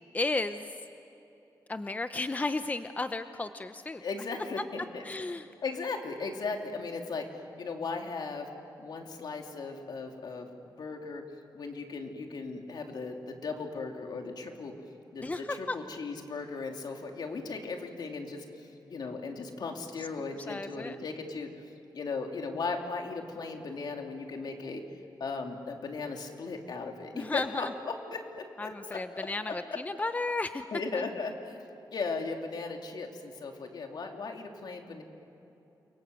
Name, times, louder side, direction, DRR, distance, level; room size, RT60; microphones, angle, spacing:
voice 1, 0.1-0.8 1.7-4.0 5.0-5.5 15.2-15.8 20.5-21.0 27.1-27.7 28.6-30.7 30.9-31.0, left 3 dB, 20° left, 9 dB, 0.7 m, -33 dB
voice 2, 4.0-5.0 5.6-8.5 8.8-10.5 10.8-11.2 11.5-14.7 15.1-18.4 18.9-21.5 21.9-24.8 25.2-29.0 30.7-31.6 31.9-35.0, left 4 dB, 70° left, 3 dB, 2.9 m, -37 dB
29.0 x 23.5 x 7.9 m, 3.0 s
wide cardioid pair, 115°, 8 cm